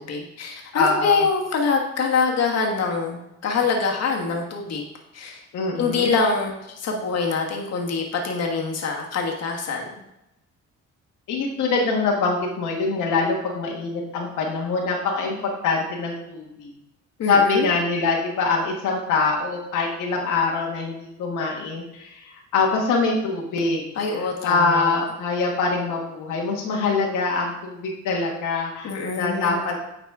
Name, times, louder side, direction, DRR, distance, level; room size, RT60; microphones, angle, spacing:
voice 1, 0.0-4.8 5.1-5.4 5.8-9.9 17.2-17.7 24.0-25.0 28.8-29.6, left 4 dB, 60° left, 1 dB, 1.3 m, -24 dB
voice 2, 0.7-1.2 5.5-6.1 11.3-16.7 17.3-28.9 29.2-29.8, left 4 dB, 90° left, -1 dB, 1.3 m, -24 dB
9.4 x 4.1 x 3.6 m, 0.86 s
cardioid pair, 90°, 30 cm